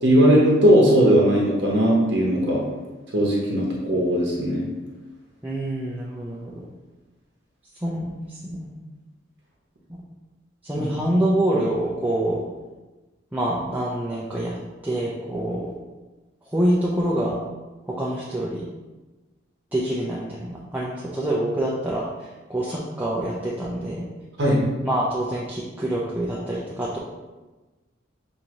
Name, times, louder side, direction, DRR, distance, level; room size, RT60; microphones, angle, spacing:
voice 1, 0.0-2.6 3.1-4.7 10.7-10.9 24.4-24.7, equal, 60° right, -3 dB, 0.8 m, -18 dB
voice 2, 5.4-6.7 7.8-8.8 10.6-12.4 13.3-14.6 14.8-15.7 16.5-17.4 17.9-18.7 19.7-24.0 24.8-27.0, right 1 dB, 10° right, -6 dB, 0.4 m, -26 dB
6.1 x 2.7 x 2.8 m, 1.2 s
head